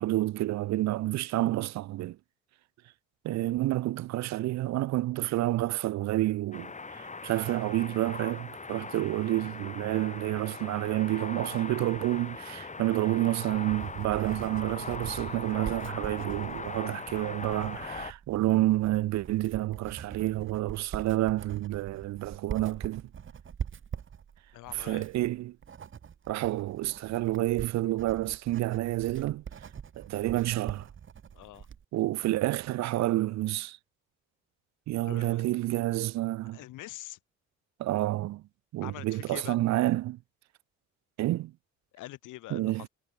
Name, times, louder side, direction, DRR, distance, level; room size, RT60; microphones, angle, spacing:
voice 1, 0.0-2.2 3.2-23.0 24.8-25.6 26.3-29.4 30.0-30.9 31.9-33.8 34.9-36.6 37.8-38.4 38.7-40.2 41.2-41.5 42.5-42.8, right 16 dB, 65° right, 0.4 m, -29 dB
sound 1, 6.5-18.1, left 4 dB, 25° left, 2.3 m, -40 dB
Writing, 13.1-31.8, right 7 dB, 40° right, 1.3 m, -43 dB
voice 2, 24.5-25.0 31.3-31.7 35.0-35.4 36.5-37.2 38.8-39.6 41.9-42.9, left 16 dB, 90° left, 1.5 m, -44 dB
cardioid pair, 90°, 30 cm